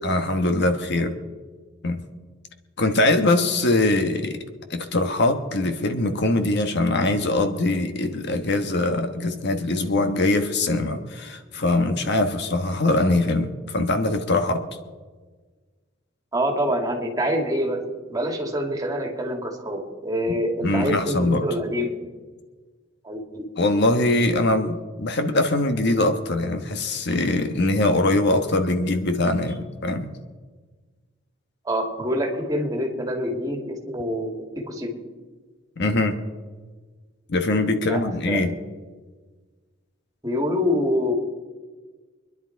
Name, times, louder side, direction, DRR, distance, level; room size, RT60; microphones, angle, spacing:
voice 1, 0.0-1.1 1.8-2.0 2.8-4.4 4.7-14.6 20.3-20.4 20.6-21.5 23.6-30.1 35.8-36.2 37.3-38.5, left 2 dB, 60° left, 7 dB, 1.3 m, -22 dB
voice 2, 16.3-22.0 23.0-23.5 31.7-35.0 37.9-38.0 38.3-38.4 40.2-41.1, equal, 20° right, 1 dB, 2.3 m, -26 dB
25.0 x 11.0 x 4.6 m, 1.4 s
head